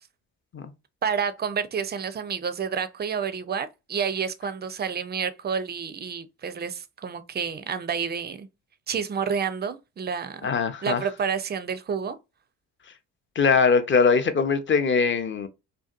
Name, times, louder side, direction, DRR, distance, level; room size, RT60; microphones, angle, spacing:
voice 1, 1.0-8.5 8.9-10.5 10.8-12.2, right 6 dB, 25° right, 0.4 m, -29 dB
voice 2, 10.4-11.0 13.4-15.5, left 5 dB, 30° left, 0.6 m, -21 dB
2.6 x 2.2 x 2.4 m
hypercardioid pair, 45°, 42 cm